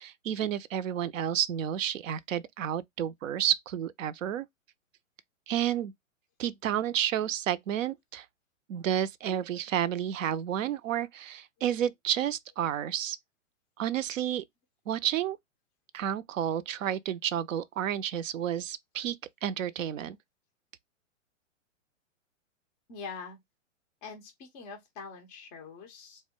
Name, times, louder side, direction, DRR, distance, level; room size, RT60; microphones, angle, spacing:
voice 1, 0.0-4.5 5.5-5.9 6.4-8.3 8.7-13.2 13.8-14.4 14.9-15.4 15.9-19.2 19.4-20.2, right 10 dB, 70° right, 0.5 m, -31 dB
voice 2, 22.9-23.4 24.0-26.2, left 5 dB, 15° left, 0.3 m, -44 dB
3.5 x 2.2 x 3.5 m
hypercardioid pair, 120°, 40 cm